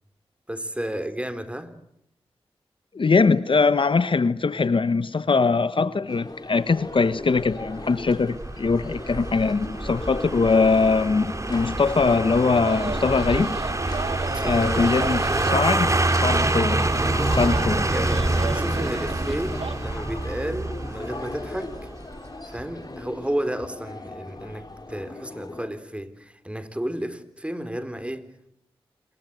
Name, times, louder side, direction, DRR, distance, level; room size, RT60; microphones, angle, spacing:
voice 1, 0.5-1.7 14.3-15.0 17.8-21.8 22.5-28.3, right 1 dB, 10° right, 3.9 m, -32 dB
voice 2, 2.9-13.5 14.4-15.9 16.2-16.8 17.4-17.8, left 4 dB, 60° left, 1.1 m, -22 dB
sound 1, 6.1-25.7, left 2 dB, 40° left, 4.1 m, -38 dB
sound 2, 7.4-22.3 22.6-22.7, right 2 dB, 30° right, 3.4 m, -26 dB
sound 3, 12.6-19.7, right 4 dB, 75° right, 2.9 m, -35 dB
27.0 x 23.0 x 8.0 m
cardioid pair, 45°, 10 cm